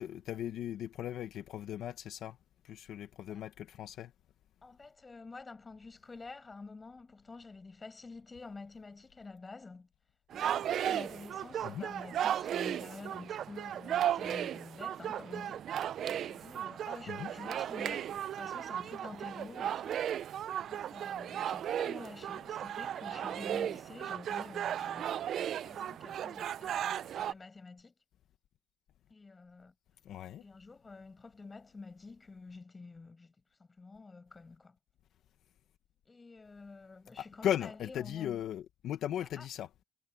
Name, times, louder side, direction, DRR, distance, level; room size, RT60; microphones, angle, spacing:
voice 1, 0.0-2.4 2.6-4.1 11.6-11.9 17.1-17.3 30.0-30.4 37.2-39.7, left 11 dB, 80° left, 1.2 m, -37 dB
voice 2, 4.6-9.9 10.3-15.6 16.1-20.0 20.6-27.9 29.1-29.7 30.4-33.3 33.8-34.8 36.1-38.4 39.2-39.5, left 3 dB, 25° left, 7.7 m, -49 dB
sound 1, 10.3-27.3, right 10 dB, 70° right, 0.4 m, -35 dB
cardioid pair, 90°, 0 cm